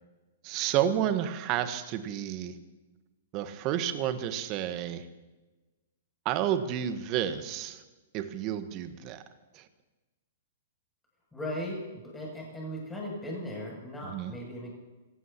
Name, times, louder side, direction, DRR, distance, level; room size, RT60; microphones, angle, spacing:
voice 1, 0.4-2.5 3.3-5.0 6.2-7.8 8.1-9.2 9.5-9.6 14.1-14.3, right 10 dB, 35° right, 10 dB, 1.3 m, -30 dB
voice 2, 11.3-11.8 12.0-14.7, equal, 10° left, -3 dB, 7.5 m, -37 dB
26.0 x 18.5 x 3.0 m, 1.2 s
figure-of-eight pair, 110°, 0 cm